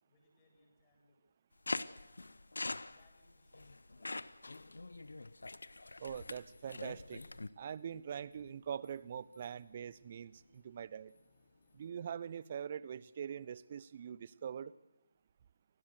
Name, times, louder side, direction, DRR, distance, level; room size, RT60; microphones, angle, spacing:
voice 1, 0.0-1.2 1.8-2.3 2.8-4.8, left 2 dB, 20° left, -1 dB, 7.8 m, -71 dB
sound 1, 1.7-7.5, left 2 dB, 70° left, 1.1 m, -43 dB
voice 2, 6.0-7.2 7.6-11.1 11.7-14.7, right 8 dB, 30° right, 19 dB, 0.9 m, -43 dB
sound 2, 6.1-11.9, left 3 dB, 50° left, 3.3 m, -70 dB
29.0 x 20.5 x 6.7 m, 0.95 s
figure-of-eight pair, 155°, 0 cm